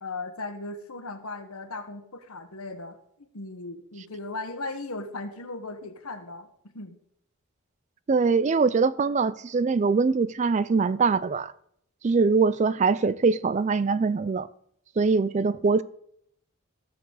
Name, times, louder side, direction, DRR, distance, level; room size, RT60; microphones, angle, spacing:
voice 1, 0.0-6.5 6.7-7.0, left 2 dB, 85° left, 1.3 m, -37 dB
voice 2, 8.1-11.5 12.0-14.5 15.0-15.8, right 4 dB, 35° right, 0.3 m, -23 dB
17.0 x 6.9 x 4.0 m
head